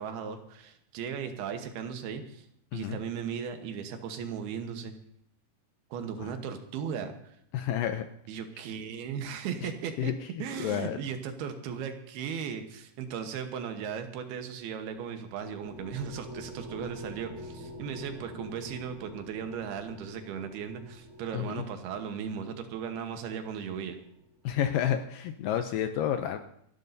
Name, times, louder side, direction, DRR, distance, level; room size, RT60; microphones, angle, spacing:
voice 1, 0.0-2.5 2.7-4.9 5.9-7.4 8.3-10.1 10.4-24.0, right 7 dB, 85° right, 7 dB, 3.1 m, -37 dB
voice 2, 7.5-8.1 9.6-9.7 10.0-10.1 10.6-11.0 21.3-21.6 24.4-26.4, left 10 dB, 80° left, 7 dB, 2.0 m, -30 dB
sound 1, 14.8-24.6, equal, 45° right, 3.5 m, -48 dB
27.5 x 12.0 x 2.7 m, 0.72 s
omnidirectional pair, 4.5 m